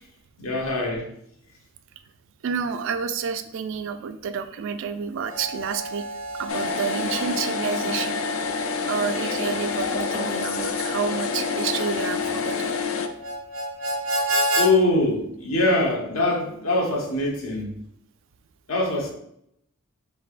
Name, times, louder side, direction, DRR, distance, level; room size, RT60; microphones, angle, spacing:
voice 1, 0.4-1.1 14.6-17.7 18.7-19.1, left 2 dB, 90° left, -1 dB, 1.0 m, -23 dB
voice 2, 2.4-6.0 6.3-8.2 8.9-12.7, right 6 dB, 65° right, 10 dB, 0.3 m, -29 dB
Harmonica, 5.2-14.7, right 1 dB, 85° right, 0.8 m, -31 dB
sound 1, 6.5-13.1, left 5 dB, 70° left, 0.4 m, -28 dB
3.9 x 3.4 x 2.4 m, 0.74 s
head